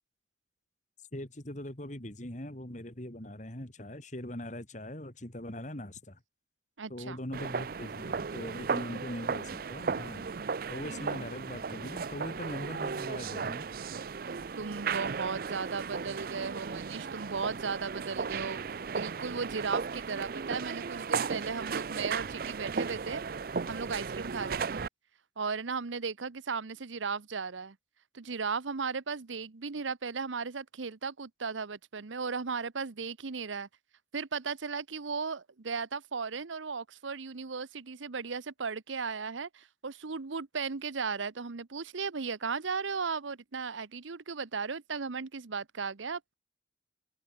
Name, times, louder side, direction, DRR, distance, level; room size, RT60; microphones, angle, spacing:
voice 1, 1.1-6.2 6.9-10.3 10.7-13.7, left 1 dB, 40° left, 2.7 m, -41 dB
voice 2, 6.8-7.2 14.6-23.2 23.7-24.8 25.4-27.8 28.1-33.7 34.1-46.3, right 5 dB, 85° right, 0.9 m, -36 dB
sound 1, 7.3-24.9, right 5 dB, 50° right, 0.5 m, -35 dB
head